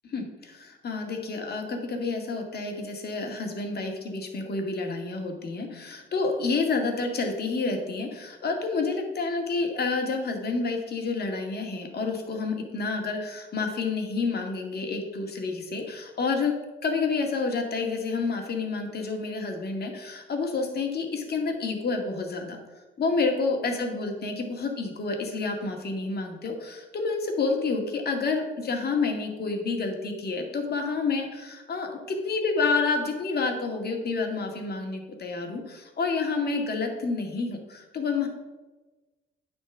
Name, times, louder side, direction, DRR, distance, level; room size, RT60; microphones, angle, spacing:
voice 1, 0.1-16.5 16.8-38.3, left 4 dB, 55° left, 3 dB, 2.1 m, -29 dB
9.6 x 4.4 x 7.2 m, 1.2 s
cardioid pair, 90°, 20 cm